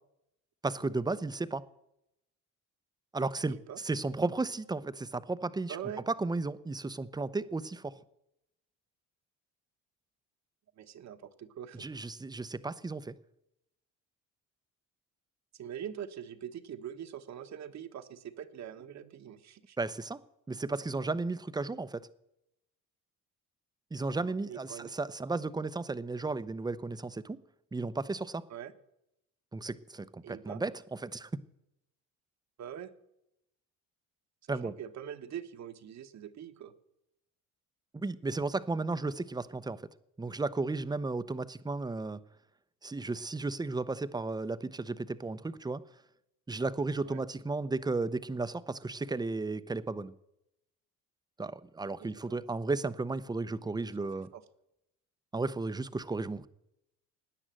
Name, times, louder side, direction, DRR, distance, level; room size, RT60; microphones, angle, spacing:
voice 1, 0.6-1.6 3.1-5.8 6.1-8.0 11.8-13.1 19.8-20.2 20.5-22.0 23.9-27.4 27.7-28.4 29.5-31.3 34.5-34.7 37.9-39.8 40.2-42.2 42.8-45.8 46.5-50.1 51.4-54.3 55.3-56.5, right 3 dB, 10° right, 0.7 m, -34 dB
voice 2, 3.5-3.8 5.7-6.0 10.8-11.9 15.5-19.8 24.5-24.9 28.5-28.7 30.2-30.6 32.6-32.9 34.5-36.7 47.0-47.2 52.0-52.4 53.9-54.1 54.3-54.4, right 9 dB, 55° right, 1.3 m, -43 dB
16.5 x 9.9 x 7.6 m
cardioid pair, 100°, 33 cm